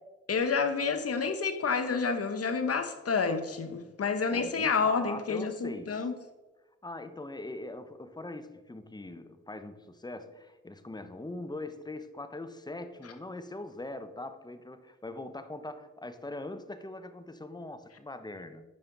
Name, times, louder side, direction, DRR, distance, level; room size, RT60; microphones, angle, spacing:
voice 1, 0.3-6.1, left 5 dB, 50° left, 1.0 m, -29 dB
voice 2, 4.3-6.1 6.8-18.6, left 2 dB, 15° left, 0.8 m, -41 dB
8.7 x 5.5 x 4.0 m
supercardioid pair, 50°, 30 cm